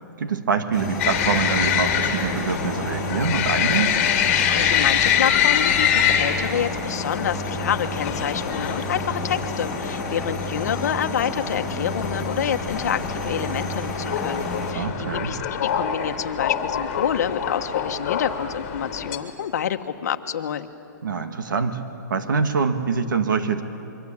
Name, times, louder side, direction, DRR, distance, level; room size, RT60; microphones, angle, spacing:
voice 1, 0.0-4.0 14.7-15.4 21.0-21.8 22.1-23.6, right 5 dB, 85° right, 7 dB, 2.3 m, -25 dB
Helicopter engine, 0.7-14.7, left 1 dB, ahead, 3.9 m, -31 dB
sound 1, 1.0-19.2, left 9 dB, 35° left, 2.8 m, -25 dB
voice 2, 4.4-20.7, left 9 dB, 55° left, 7 dB, 1.4 m, -28 dB
25.5 x 23.5 x 8.8 m, 2.8 s
hypercardioid pair, 170°, 10 cm